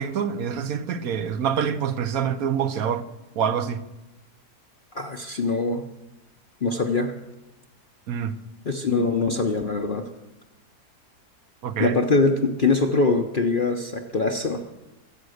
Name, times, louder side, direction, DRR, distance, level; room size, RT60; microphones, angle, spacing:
voice 1, 0.0-3.1 3.4-3.8 8.1-8.3 11.6-12.0, right 7 dB, 65° right, 1.2 m, -26 dB
voice 2, 4.9-5.9 6.6-7.1 8.6-10.1 11.8-14.6, left 3 dB, 40° left, 0.8 m, -23 dB
23.5 x 8.1 x 6.5 m
omnidirectional pair, 1.7 m